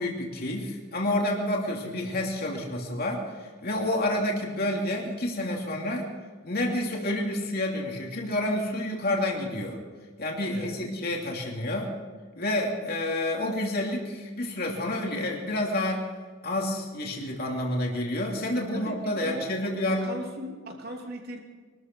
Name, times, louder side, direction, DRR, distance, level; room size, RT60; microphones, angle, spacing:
voice 1, 0.0-6.1 6.4-9.8 10.2-11.9 12.4-16.0 16.4-20.1, left 1 dB, 50° left, -1 dB, 3.0 m, -29 dB
voice 2, 18.7-19.5 19.9-21.4, equal, 50° right, 1 dB, 2.8 m, -38 dB
23.5 x 13.5 x 4.6 m, 1.5 s
head